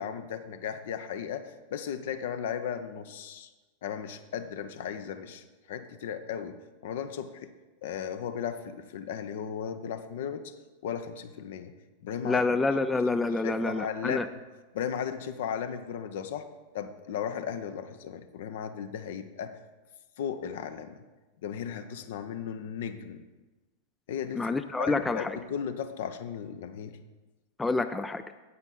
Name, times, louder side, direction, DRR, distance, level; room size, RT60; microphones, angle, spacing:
voice 1, 0.0-3.5 3.8-6.6 6.8-7.5 7.8-10.5 10.8-11.7 12.0-12.4 13.3-14.2 14.7-16.5 16.7-19.6 20.2-21.0 21.4-23.2 24.1-27.0, left 8 dB, 55° left, 10 dB, 0.6 m, -36 dB
voice 2, 12.2-14.2 24.3-25.4 27.6-28.2, left 3 dB, 10° left, 10 dB, 0.3 m, -27 dB
9.5 x 8.1 x 3.7 m, 1.2 s
figure-of-eight pair, 90°, 0 cm